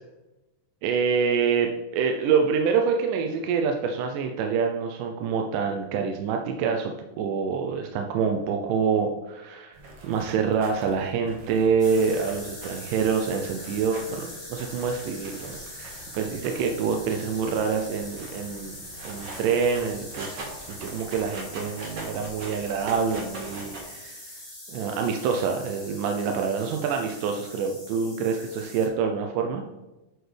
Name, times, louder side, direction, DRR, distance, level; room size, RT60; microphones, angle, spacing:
voice 1, 0.8-18.8 19.0-24.4 24.7-29.6, right 6 dB, 80° right, 3 dB, 2.1 m, -26 dB
sound 1, 9.7-23.8, right 2 dB, 60° right, 2.4 m, -43 dB
sound 2, 11.8-28.9, left 1 dB, 15° left, 2.8 m, -42 dB
9.0 x 6.5 x 3.3 m, 1.0 s
omnidirectional pair, 4.0 m